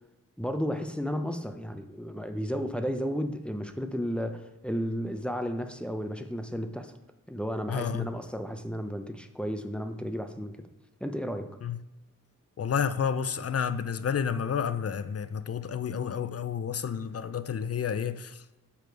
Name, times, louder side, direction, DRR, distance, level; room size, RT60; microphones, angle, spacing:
voice 1, 0.4-7.0 7.3-10.7 11.0-11.5, equal, 5° left, 0.6 m, -33 dB
voice 2, 7.7-8.1 11.6-11.8 12.6-18.4, left 7 dB, 45° left, 0.5 m, -30 dB
7.2 x 4.9 x 4.6 m
wide cardioid pair, 70°, 33 cm